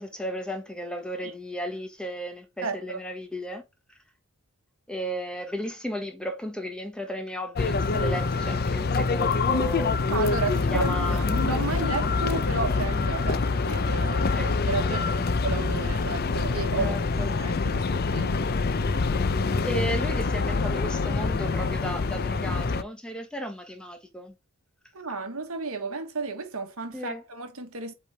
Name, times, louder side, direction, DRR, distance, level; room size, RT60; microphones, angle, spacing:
voice 1, 0.0-3.6 3.9-4.0 4.9-10.0 10.7-11.3 14.3-14.5 14.8-15.2 16.8-17.3 19.6-24.3 26.9-27.2, equal, 5° left, 1.1 m, -34 dB
voice 2, 2.6-3.0 10.1-16.9 17.4-18.5 24.9-27.9, right 4 dB, 70° right, 1.3 m, -33 dB
sound 1, 7.5-22.8, left 4 dB, 45° left, 0.5 m, -25 dB
8.2 x 3.3 x 4.0 m
head